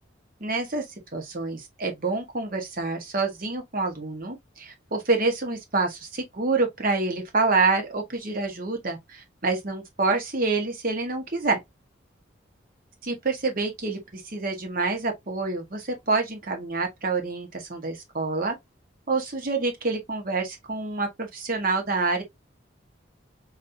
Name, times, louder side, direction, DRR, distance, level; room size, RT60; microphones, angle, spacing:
voice 1, 0.4-0.8 1.1-11.6 13.0-18.5 19.1-22.2, right 3 dB, 45° right, 1.1 m, -27 dB
4.1 x 2.7 x 2.6 m
head